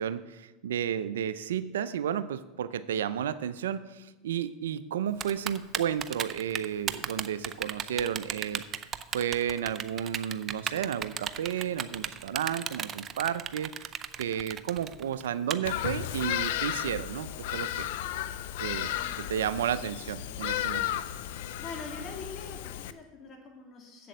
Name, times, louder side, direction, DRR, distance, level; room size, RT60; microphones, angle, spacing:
voice 1, 0.0-13.9 14.2-17.9 18.6-21.0, right 9 dB, 90° right, 15 dB, 0.5 m, -32 dB
Typing, 5.2-15.5, right 9 dB, 35° right, 0.6 m, -34 dB
Bird vocalization bird call bird song, 15.6-22.9, left 12 dB, 75° left, 0.5 m, -34 dB
voice 2, 21.6-24.1, left 3 dB, 40° left, 1 dB, 2.9 m, -44 dB
7.6 x 7.5 x 8.2 m, 1.1 s
hypercardioid pair, 105°, 0 cm